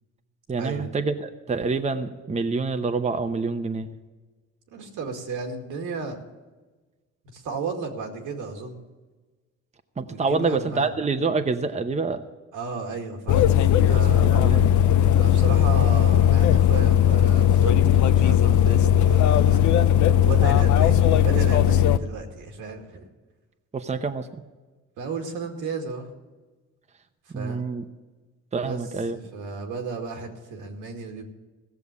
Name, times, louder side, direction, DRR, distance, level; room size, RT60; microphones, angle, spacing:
voice 1, 0.5-3.9 10.0-12.2 14.0-14.7 19.9-20.0 23.7-24.3 27.3-27.8 28.5-29.2, right 4 dB, 20° right, 7 dB, 0.9 m, -27 dB
voice 2, 4.7-6.2 7.2-8.8 10.1-10.9 12.5-13.4 13.8-14.6 15.2-19.6 20.2-23.0 25.0-26.1 27.3-27.6 28.6-28.8 29.1-31.2, right 4 dB, 90° right, 3 dB, 2.2 m, -34 dB
sound 1, 13.3-22.0, left 10 dB, 70° left, 0.6 m, -18 dB
16.0 x 7.0 x 8.2 m, 1.2 s
cardioid pair, 90°, 30 cm